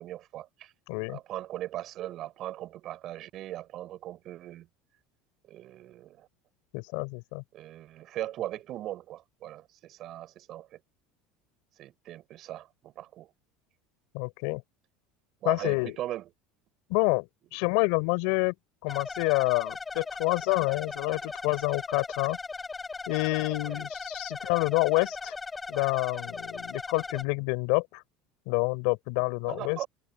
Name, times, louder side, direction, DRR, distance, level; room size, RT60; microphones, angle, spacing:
voice 1, 0.0-0.7 1.1-4.7 5.4-6.3 7.5-10.8 11.8-13.3 15.4-16.3 23.6-23.8 29.5-29.9, right 13 dB, 50° right, 5.6 m, -39 dB
voice 2, 0.9-1.2 6.7-7.4 14.1-14.6 15.5-16.0 16.9-18.5 18.8-22.4 23.1-25.3 25.7-28.0 28.5-29.8, left 30 dB, 75° left, 3.6 m, -28 dB
sound 1, 18.9-27.2, left 4 dB, 20° left, 5.3 m, -38 dB
supercardioid pair, 105°, 0 cm